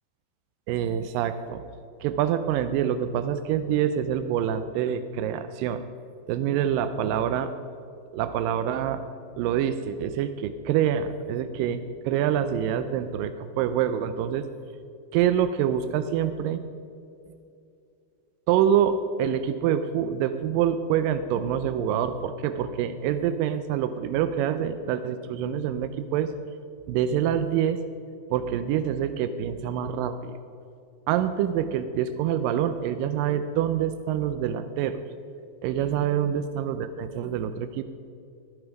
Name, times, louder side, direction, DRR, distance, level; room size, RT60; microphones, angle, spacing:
voice 1, 0.7-1.6 2.0-5.8 6.3-7.5 8.1-9.0 9.4-14.5 15.1-16.6 18.5-26.3 26.9-27.8 28.3-30.4 31.1-35.0 35.6-37.8, right 9 dB, 85° right, 10 dB, 2.0 m, -26 dB
14.0 x 9.7 x 5.1 m, 2.5 s
omnidirectional pair, 4.4 m